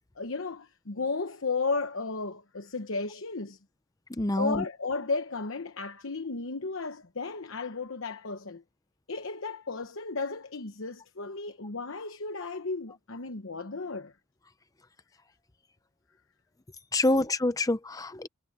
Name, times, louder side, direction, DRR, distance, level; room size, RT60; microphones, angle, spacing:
voice 1, 0.2-3.6 4.4-8.6 9.1-14.1 17.1-17.3, left 4 dB, 65° left, 1.0 m, -34 dB
voice 2, 4.2-4.6 16.9-18.3, left 2 dB, 15° left, 0.6 m, -26 dB
head